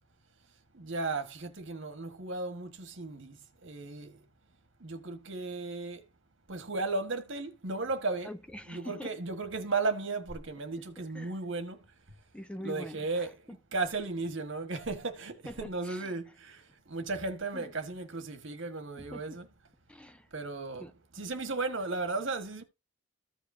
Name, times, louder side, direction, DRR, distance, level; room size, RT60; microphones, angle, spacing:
voice 1, 0.7-3.4 3.6-4.2 4.8-6.0 6.5-8.3 8.7-11.8 12.6-13.4 13.7-19.5 20.3-22.6, right 3 dB, 65° right, 1.5 m, -35 dB
voice 2, 8.2-9.2 11.1-11.3 12.3-13.3 15.4-16.1 17.5-17.7 19.0-19.4 19.9-20.3 20.8-20.9, equal, 5° left, 0.4 m, -44 dB
15.0 x 5.0 x 2.7 m
head